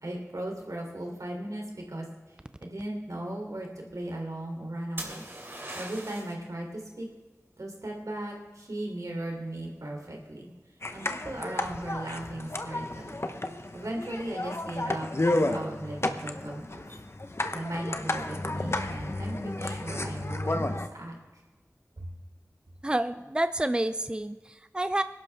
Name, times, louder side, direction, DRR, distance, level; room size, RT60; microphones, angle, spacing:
voice 1, 0.0-2.0 2.6-5.2 5.7-7.1 7.6-10.5 10.9-13.2 13.7-16.9 17.5-21.2 22.0-22.1, right 1 dB, 85° right, 1 dB, 3.3 m, -37 dB
sound 1, 5.0-6.4 10.1-10.6, right 1 dB, 45° right, 3.0 m, -40 dB
sound 2, 10.8-20.9, left 1 dB, 50° left, 1.0 m, -32 dB
voice 2, 22.8-25.0, right 1 dB, 15° right, 11 dB, 0.5 m, -29 dB
21.0 x 11.5 x 3.6 m, 1.2 s
wide cardioid pair, 45°, 6 cm